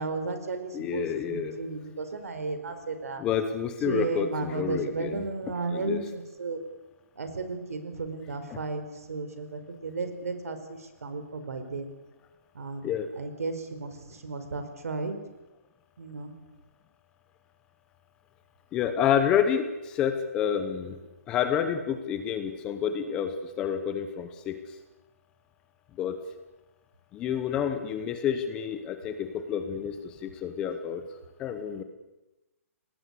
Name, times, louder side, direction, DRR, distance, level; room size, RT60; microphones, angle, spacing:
voice 1, 0.0-3.2 3.8-6.6 7.2-11.9 12.5-15.1 16.0-16.3, right 3 dB, 75° right, 8 dB, 4.7 m, -34 dB
voice 2, 0.7-1.6 3.2-5.3 5.7-6.0 8.5-8.6 12.8-13.1 18.7-21.0 21.3-24.6 26.0-26.2 27.1-31.0 31.4-31.8, left 8 dB, 10° left, 9 dB, 0.8 m, -29 dB
24.0 x 19.0 x 8.3 m, 1.0 s
hypercardioid pair, 180°, 8 cm